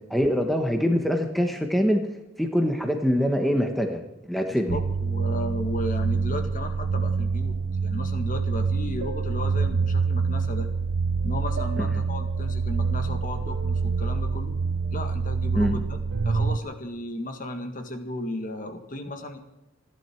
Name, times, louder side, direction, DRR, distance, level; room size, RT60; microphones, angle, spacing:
voice 1, 0.1-2.0 2.4-4.0 4.3-4.8 15.5-15.7, equal, ahead, 4 dB, 1.1 m, -23 dB
voice 2, 4.5-10.7 11.2-14.6 14.9-16.0 16.3-19.4, left 1 dB, 40° left, 6 dB, 1.8 m, -34 dB
sound 1, 4.7-16.6, right 4 dB, 60° right, 0.6 m, -26 dB
28.0 x 11.0 x 4.6 m, 0.94 s
head